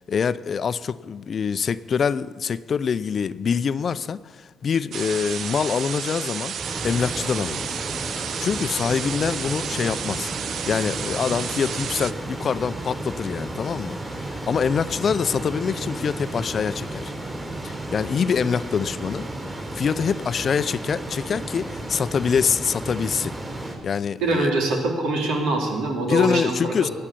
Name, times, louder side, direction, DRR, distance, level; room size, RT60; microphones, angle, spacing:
voice 1, 0.0-6.5 6.8-7.7 8.2-10.3 10.7-17.1 17.6-19.3 19.7-23.3 23.8-24.5 26.1-26.9, left 6 dB, 50° left, 0.5 m, -25 dB
sound 1, 4.9-12.1, right 8 dB, 65° right, 0.7 m, -31 dB
sound 2, 6.6-23.8, right 1 dB, 25° right, 4.4 m, -33 dB
voice 2, 24.2-26.9, right 2 dB, 90° right, 2.9 m, -24 dB
16.0 x 8.8 x 8.5 m
cardioid pair, 90°, 0 cm